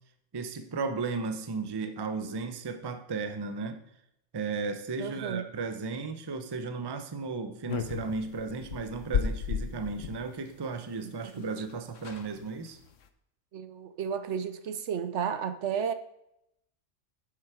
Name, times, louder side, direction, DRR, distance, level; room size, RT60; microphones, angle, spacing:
voice 1, 0.3-3.8 4.3-12.8, right 4 dB, 25° right, 0.5 m, -35 dB
voice 2, 5.0-5.4 11.0-11.5 13.5-15.9, right 7 dB, 65° right, 0.9 m, -33 dB
sound 1, 7.7-10.2 11.4-11.5 11.7-11.8 12.0-12.3 12.8-13.1, left 7 dB, 70° left, 1.1 m, -33 dB
7.8 x 7.1 x 4.8 m
omnidirectional pair, 1.4 m